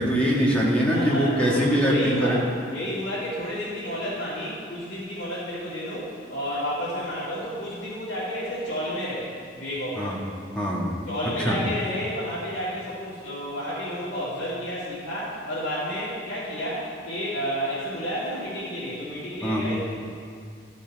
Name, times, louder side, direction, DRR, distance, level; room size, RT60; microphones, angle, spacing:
voice 1, 0.0-2.4 10.0-10.2 10.6-10.9 11.4-11.6 19.4-19.6, equal, 5° left, -5 dB, 1.7 m, -22 dB
voice 2, 0.8-2.4 2.7-10.2 11.1-19.7, equal, 70° left, -13 dB, 2.5 m, -31 dB
13.0 x 5.6 x 4.7 m, 2.3 s
head